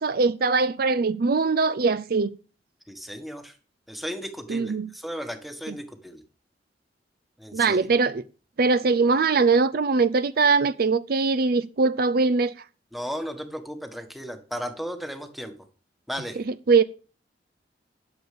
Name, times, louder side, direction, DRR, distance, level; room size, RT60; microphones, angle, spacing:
voice 1, 0.0-2.3 4.5-4.9 7.5-8.2 8.6-12.5 16.5-16.8, right 4 dB, 55° right, 0.5 m, -21 dB
voice 2, 2.9-3.5 3.9-6.2 7.4-7.9 12.9-15.5 16.1-16.4, equal, ahead, 1.4 m, -35 dB
12.0 x 7.0 x 6.8 m
head